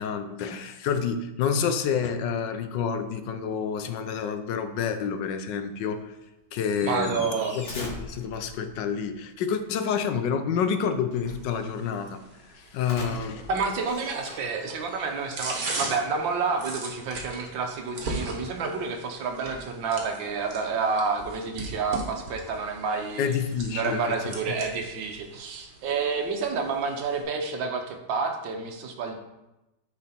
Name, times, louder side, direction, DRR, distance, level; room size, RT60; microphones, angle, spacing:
voice 1, 0.0-6.1 6.5-12.2 12.5-13.5 23.2-24.4, left 7 dB, 70° left, 9 dB, 1.3 m, -29 dB
sound 1, 2.4-2.6 2.9-3.0 3.3-3.7 5.5-5.6 6.0-6.1 6.5-9.0 10.9-12.0 12.8-17.5, left 2 dB, 40° left, 1.4 m, -43 dB
voice 2, 6.8-7.5 13.5-23.4 23.7-29.1, right 4 dB, 75° right, 4 dB, 1.6 m, -29 dB
sound 2, 11.3-27.2, right 2 dB, 55° right, 1.7 m, -40 dB
8.7 x 5.1 x 4.3 m, 0.96 s
omnidirectional pair, 2.1 m